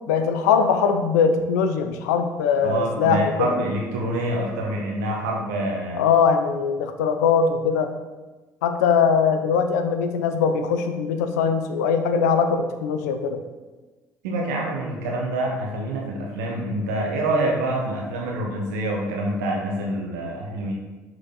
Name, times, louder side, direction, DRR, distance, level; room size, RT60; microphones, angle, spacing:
voice 1, 0.1-3.5 6.0-7.9 8.6-13.4, left 6 dB, 80° left, 7 dB, 0.6 m, -21 dB
voice 2, 2.6-6.0 14.2-20.7, right 1 dB, 80° right, -1 dB, 1.3 m, -26 dB
6.1 x 5.0 x 3.8 m, 1.2 s
hypercardioid pair, 55°, 9 cm